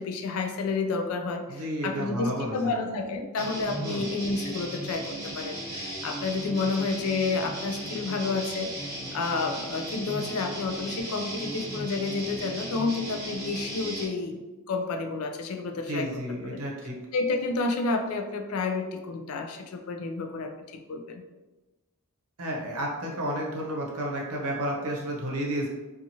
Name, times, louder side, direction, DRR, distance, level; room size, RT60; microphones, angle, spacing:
voice 1, 0.0-14.4 14.7-16.6 17.1-21.2, left 3 dB, 70° left, 6 dB, 0.3 m, -30 dB
voice 2, 1.5-2.7 3.8-4.1 15.9-16.9 22.4-25.7, equal, 85° right, -1 dB, 0.7 m, -31 dB
sound 1, 3.4-14.0, right 1 dB, 15° right, 1.0 m, -36 dB
2.8 x 2.4 x 2.7 m, 1.1 s
head